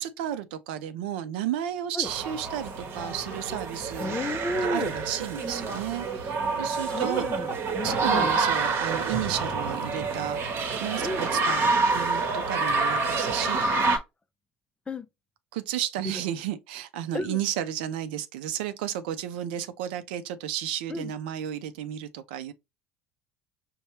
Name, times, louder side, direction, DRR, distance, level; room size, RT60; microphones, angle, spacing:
voice 1, 0.0-4.3 4.6-7.3 7.8-13.8 15.5-22.5, right 11 dB, 75° right, 0.5 m, -33 dB
sound 1, 2.0-14.0, right 4 dB, 45° right, 1.0 m, -27 dB
voice 2, 4.0-4.9 6.8-8.3 11.0-11.3 13.8-14.0 14.9-15.1 17.1-17.4 20.9-21.1, left 2 dB, 20° left, 0.5 m, -32 dB
5.3 x 2.2 x 2.9 m
hypercardioid pair, 70°, 6 cm